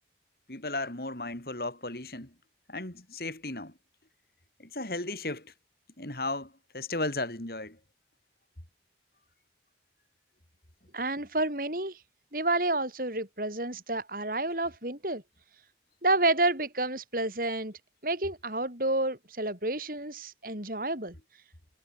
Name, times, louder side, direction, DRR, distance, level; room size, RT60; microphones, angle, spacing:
voice 1, 0.5-2.4 2.7-3.8 4.6-5.5 6.0-7.8, left 2 dB, 55° left, 3.6 m, -35 dB
voice 2, 10.9-12.0 12.3-15.2 16.0-21.2, right 2 dB, 50° right, 6.6 m, -30 dB
head